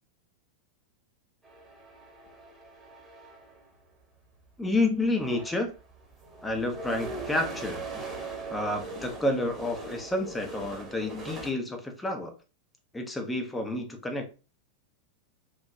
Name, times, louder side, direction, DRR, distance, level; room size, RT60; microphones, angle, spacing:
sound 1, 1.4-3.7 4.6-4.7 5.0-11.5, right 3 dB, 10° right, 1.0 m, -40 dB
voice 1, 4.6-5.7 6.4-12.3 12.9-14.3, left 2 dB, 10° left, 0.7 m, -30 dB
3.8 x 2.7 x 2.3 m
figure-of-eight pair, 90°, 0 cm